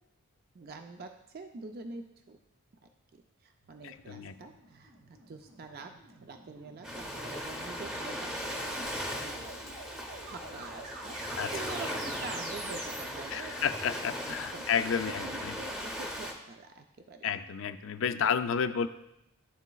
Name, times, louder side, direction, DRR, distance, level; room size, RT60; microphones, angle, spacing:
voice 1, 0.5-2.4 3.1-4.9 5.3-9.7 10.2-13.8 14.5-14.8 15.2-17.4, right 3 dB, 45° right, 5 dB, 0.4 m, -46 dB
sound 1, 3.6-13.0, right 2 dB, 90° right, 1.8 m, -48 dB
voice 2, 3.8-4.3 11.4-11.5 13.3-15.5 17.2-18.9, left 7 dB, 60° left, 10 dB, 0.3 m, -31 dB
Ocean, 6.8-16.3, equal, 5° right, 0.7 m, -38 dB
11.5 x 4.0 x 2.3 m, 0.87 s
head